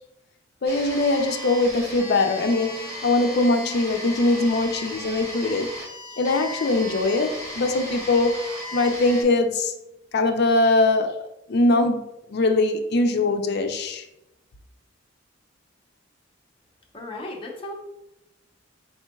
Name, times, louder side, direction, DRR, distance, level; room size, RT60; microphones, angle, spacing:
voice 1, 0.6-5.7 6.2-9.7 10.1-11.1 11.5-12.0 12.3-14.0, left 2 dB, 60° left, 5 dB, 0.5 m, -22 dB
sound 1, 0.6-9.2, left 1 dB, 35° right, 1.3 m, -36 dB
voice 2, 16.9-17.7, left 1 dB, 30° left, -1 dB, 0.8 m, -35 dB
4.4 x 4.2 x 2.3 m, 0.87 s
head